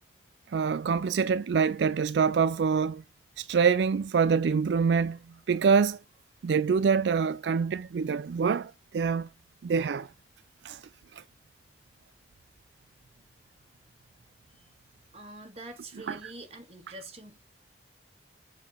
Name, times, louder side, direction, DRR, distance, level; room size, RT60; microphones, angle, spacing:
voice 1, 0.5-3.0 3.4-5.2 5.5-6.0 6.4-9.3 9.6-10.1 10.6-10.8 11.1-11.2 16.1-16.2, right 6 dB, 80° right, 0.4 m, -25 dB
voice 2, 15.1-17.4, right 2 dB, 35° right, 1.7 m, -45 dB
6.9 x 4.1 x 5.0 m
head